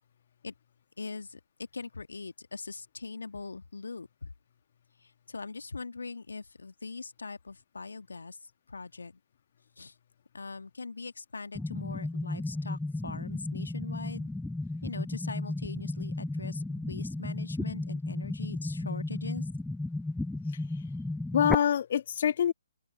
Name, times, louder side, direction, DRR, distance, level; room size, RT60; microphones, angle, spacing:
voice 1, 1.0-1.4 1.7-4.3 5.0-8.4 8.7-9.2 9.8-9.9 10.3-14.3 14.8-19.5, left 4 dB, 65° left, 1.7 m, -41 dB
sound 1, 11.6-21.6, left 2 dB, 5° left, 1.3 m, -34 dB
voice 2, 20.5-20.8 21.3-22.5, left 9 dB, 45° left, 1.6 m, -26 dB
open air
figure-of-eight pair, 135°, 0 cm